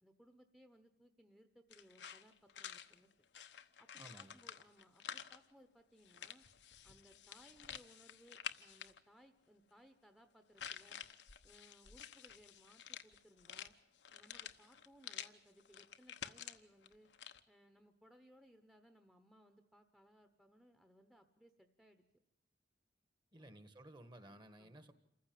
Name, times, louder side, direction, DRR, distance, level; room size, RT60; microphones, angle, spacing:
voice 1, 0.0-3.1 3.8-6.4 6.8-11.0 11.4-13.8 14.1-17.1 17.5-22.0 23.3-23.6 24.6-24.8, equal, ahead, 8 dB, 1.0 m, -65 dB
sound 1, 1.7-5.4 6.0-9.0 10.6-15.3 15.6-17.4, left 9 dB, 80° left, 1.1 m, -50 dB
voice 2, 4.0-4.4 23.3-24.9, right 1 dB, 25° right, 11 dB, 1.5 m, -56 dB
28.0 x 15.0 x 9.3 m, 0.81 s
head